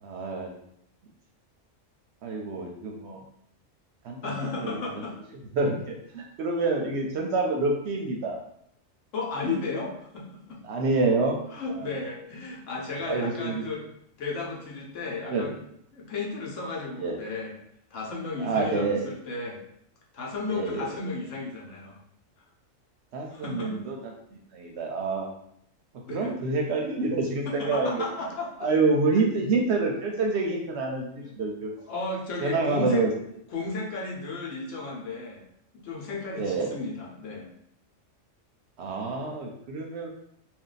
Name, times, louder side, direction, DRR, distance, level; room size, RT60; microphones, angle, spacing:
voice 1, 0.0-0.5 2.2-3.2 4.0-4.8 5.5-8.4 10.6-11.4 11.7-11.9 13.1-13.6 15.3-15.5 17.0-17.2 18.4-19.0 20.5-20.9 23.1-24.0 24.5-25.3 26.1-28.0 28.6-31.7 32.4-33.1 36.4-36.7 38.8-40.1, right 3 dB, 65° right, 0 dB, 0.7 m, -27 dB
voice 2, 4.2-5.2 9.1-10.6 11.5-13.8 14.2-15.5 15.9-17.5 17.9-19.6 20.1-22.0 23.3-23.7 26.1-26.3 27.5-28.5 29.1-29.2 31.2-31.4 31.9-33.1 33.5-35.4 35.8-37.5, left 3 dB, 70° left, -2 dB, 1.1 m, -34 dB
2.6 x 2.2 x 3.8 m, 0.72 s
omnidirectional pair, 1.4 m